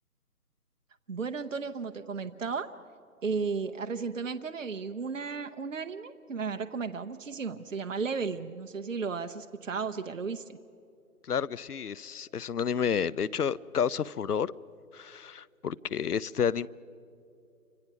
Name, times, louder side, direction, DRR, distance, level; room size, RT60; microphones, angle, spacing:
voice 1, 1.1-2.7 3.2-10.6, right 5 dB, 55° right, 0.9 m, -34 dB
voice 2, 11.3-14.5 14.9-16.7, left 7 dB, 75° left, 0.7 m, -30 dB
28.5 x 25.5 x 6.0 m
figure-of-eight pair, 160°, 46 cm